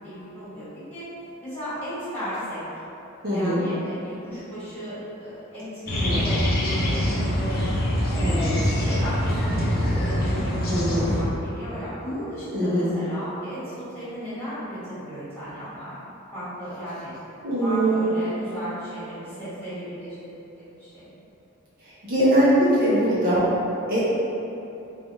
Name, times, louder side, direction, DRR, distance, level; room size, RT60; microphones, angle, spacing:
voice 1, 0.0-1.0 1.4-2.6 3.3-7.7 8.1-16.0 16.3-17.1 17.6-21.1, equal, 10° left, -14 dB, 1.4 m, -35 dB
voice 2, 3.2-3.6 6.0-6.3 8.2-8.6 10.7-11.1 12.5-12.9 17.4-18.0 21.8-23.5 23.9-24.0, right 1 dB, 45° right, -9 dB, 0.6 m, -22 dB
sound 1, 5.9-11.2, equal, 45° left, 0.6 m, -24 dB
3.3 x 2.3 x 3.9 m, 2.9 s
head